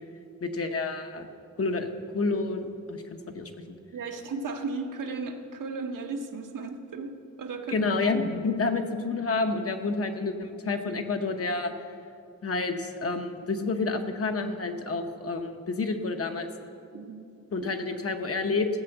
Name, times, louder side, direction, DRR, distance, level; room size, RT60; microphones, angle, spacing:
voice 1, 0.4-1.3 1.6-1.9 2.1-3.8 7.7-11.7 12.4-16.5 17.5-18.7, left 3 dB, 45° left, 6 dB, 0.8 m, -29 dB
voice 2, 3.9-7.8 16.9-17.2 17.6-17.7, right 4 dB, 70° right, 4 dB, 1.1 m, -35 dB
15.5 x 6.9 x 7.9 m, 2.6 s
wide cardioid pair, 175°, 33 cm